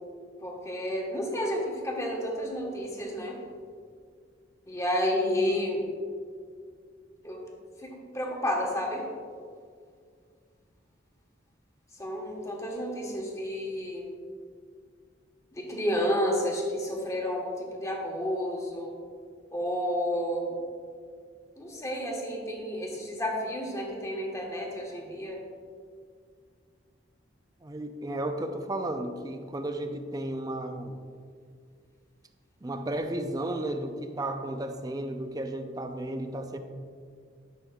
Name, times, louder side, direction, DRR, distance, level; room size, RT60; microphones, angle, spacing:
voice 1, 0.4-3.4 4.7-5.8 7.2-7.4 7.8-9.1 12.0-14.1 15.5-18.9 19.5-20.5 21.6-25.4, equal, 15° left, -1 dB, 1.3 m, -31 dB
voice 2, 27.6-31.0 32.6-36.6, right 1 dB, 20° right, 6 dB, 0.5 m, -33 dB
12.5 x 6.2 x 2.4 m, 2.1 s
head